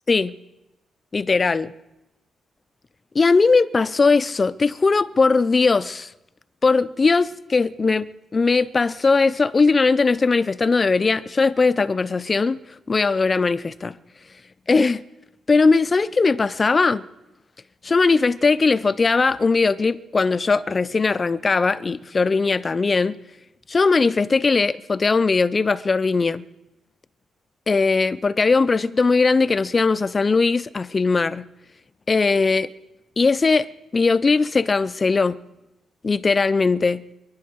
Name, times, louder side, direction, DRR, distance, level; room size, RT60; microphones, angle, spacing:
voice 1, 1.1-1.7 3.1-6.1 6.6-12.6 12.9-13.9 14.7-15.0 15.5-17.0 17.8-23.2 23.7-26.4 27.7-31.5 32.1-32.7 33.2-33.7 33.9-35.4 36.0-37.0, left 4 dB, 35° left, 0.6 m, -19 dB
26.5 x 10.5 x 4.7 m
cardioid pair, 85°, 0 cm